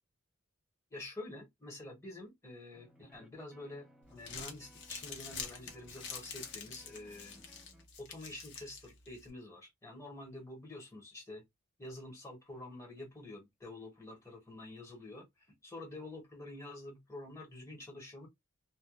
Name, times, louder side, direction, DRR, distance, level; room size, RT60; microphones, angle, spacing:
voice 1, 0.9-7.4 8.0-11.4 11.8-18.3, left 2 dB, 15° left, 1.1 m, -48 dB
sound 1, 2.7-7.9, equal, 5° right, 0.4 m, -62 dB
Crumpling crinkling, 4.0-9.3, left 6 dB, 60° left, 0.8 m, -47 dB
2.2 x 2.1 x 2.9 m
head